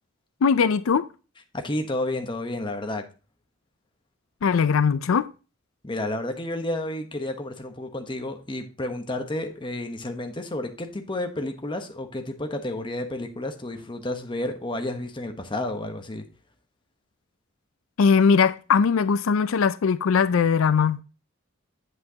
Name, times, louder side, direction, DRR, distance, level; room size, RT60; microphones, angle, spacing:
voice 1, 0.4-1.1 4.4-5.3 18.0-21.0, left 6 dB, 90° left, 0.4 m, -20 dB
voice 2, 1.5-3.0 5.8-16.2, left 1 dB, 25° left, 1.0 m, -31 dB
8.3 x 7.5 x 2.8 m
head